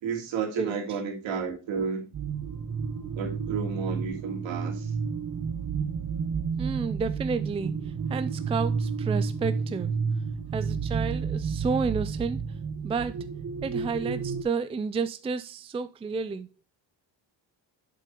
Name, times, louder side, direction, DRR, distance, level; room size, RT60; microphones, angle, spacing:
voice 1, 0.0-2.1 3.2-4.9, right 6 dB, 75° right, 2.7 m, -32 dB
sound 1, 2.1-14.4, right 5 dB, 40° right, 1.4 m, -31 dB
voice 2, 6.6-9.9 10.5-12.4 12.8-13.2 13.6-16.5, right 4 dB, 15° right, 0.4 m, -31 dB
7.8 x 6.3 x 3.7 m
cardioid pair, 145°, 46 cm